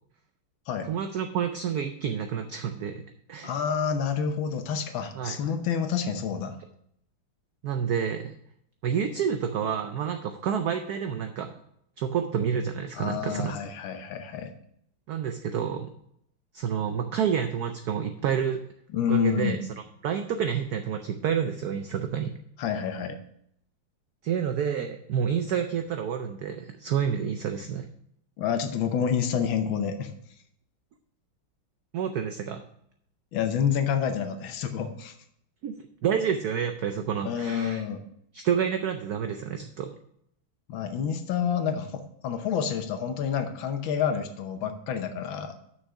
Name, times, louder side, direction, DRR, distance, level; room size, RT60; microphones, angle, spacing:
voice 1, 0.8-3.0 3.3-3.5 5.2-5.4 7.6-8.3 8.8-11.5 12.0-13.5 15.1-15.9 16.5-18.6 19.1-19.6 20.0-22.4 24.2-27.9 31.9-32.6 35.6-35.7 36.0-37.8 38.3-40.0, right 8 dB, 80° right, 7 dB, 0.8 m, -29 dB
voice 2, 3.4-6.6 12.9-14.5 18.9-19.6 22.6-23.2 28.4-30.1 33.3-35.1 37.2-38.0 40.7-45.6, left 7 dB, 70° left, 8 dB, 1.5 m, -28 dB
6.4 x 6.2 x 6.7 m, 0.72 s
omnidirectional pair, 2.3 m